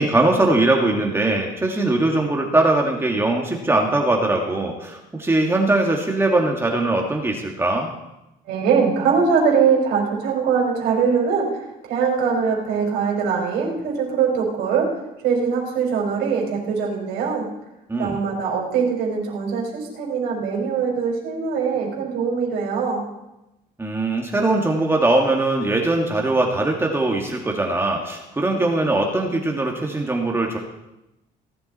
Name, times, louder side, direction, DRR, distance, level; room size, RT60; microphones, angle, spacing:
voice 1, 0.0-7.9 17.9-18.2 23.8-30.6, right 2 dB, 15° right, 0 dB, 1.9 m, -21 dB
voice 2, 8.5-11.5 11.8-14.9 15.2-17.5 18.0-23.0, right 6 dB, 85° right, -1 dB, 4.5 m, -22 dB
18.5 x 10.5 x 4.3 m, 0.93 s
cardioid pair, 110°, 17 cm